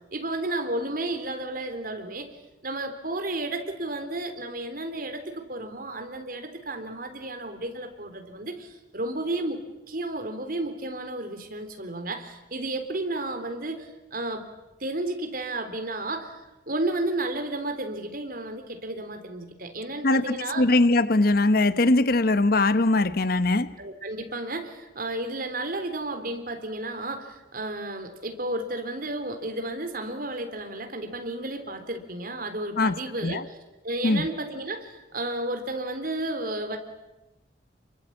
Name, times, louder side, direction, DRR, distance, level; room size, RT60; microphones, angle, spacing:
voice 1, 0.1-2.3 2.6-9.6 9.9-14.5 14.8-20.6 23.8-33.6 33.8-36.8, right 2 dB, 50° right, 3.8 m, -32 dB
voice 2, 20.0-23.8 32.8-33.0 33.2-33.4 34.0-34.2, left 2 dB, 55° left, 1.0 m, -21 dB
28.5 x 23.5 x 8.9 m
head